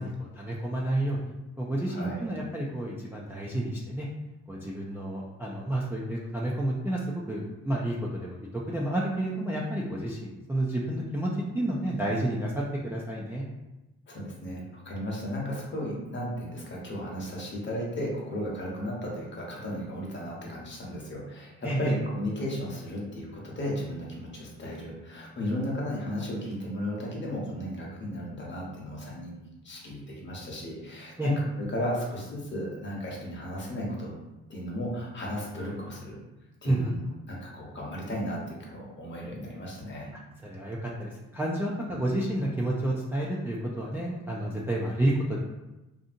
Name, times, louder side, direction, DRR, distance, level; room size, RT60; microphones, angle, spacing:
voice 1, 0.0-4.1 4.5-7.0 7.3-11.3 11.5-13.4 21.6-21.9 31.2-31.3 36.6-36.9 40.4-45.4, right 1 dB, 10° right, -4 dB, 0.3 m, -30 dB
voice 2, 1.9-2.3 14.1-29.4 29.6-34.2 34.5-36.2 36.6-40.2 41.9-42.0, equal, 40° left, -3 dB, 0.9 m, -35 dB
2.7 x 2.6 x 2.5 m, 1.0 s
cardioid pair, 90°, 30 cm